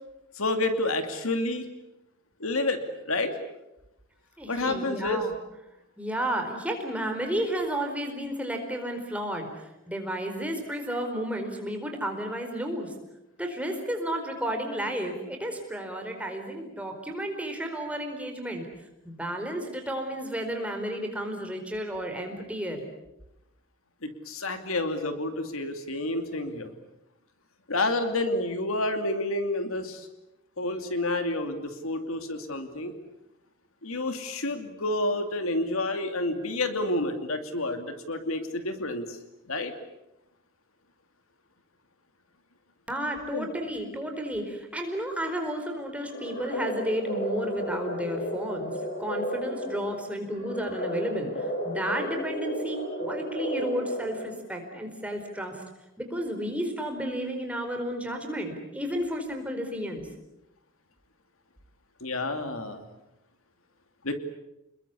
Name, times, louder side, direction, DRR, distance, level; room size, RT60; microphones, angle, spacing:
voice 1, 0.3-1.7 2.4-2.8 3.1-3.4 4.5-5.2 24.0-26.7 27.7-30.1 30.6-32.9 33.8-39.2 39.5-39.7 43.3-43.5 62.0-62.8 64.0-64.2, left 2 dB, 75° left, 7 dB, 2.6 m, -29 dB
voice 2, 4.4-5.3 6.0-12.9 13.4-18.7 19.0-22.8 42.9-48.7 49.0-55.6 56.0-60.1, right 1 dB, 5° right, 3 dB, 4.5 m, -32 dB
sound 1, 46.0-54.5, equal, 40° left, 7.7 m, -33 dB
29.0 x 21.5 x 8.4 m, 0.92 s
head